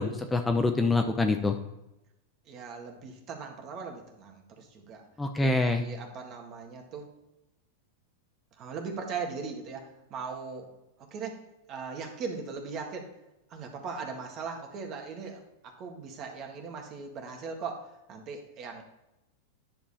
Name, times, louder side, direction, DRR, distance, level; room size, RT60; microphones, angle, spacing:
voice 1, 0.0-1.6 5.2-5.8, left 3 dB, 10° left, 5 dB, 0.7 m, -25 dB
voice 2, 2.5-5.0 5.4-7.1 8.6-10.7 11.1-11.4 11.7-13.1 13.5-18.8, right 5 dB, 40° right, 2 dB, 1.8 m, -39 dB
10.0 x 5.3 x 4.2 m, 0.92 s
hypercardioid pair, 115°, 0 cm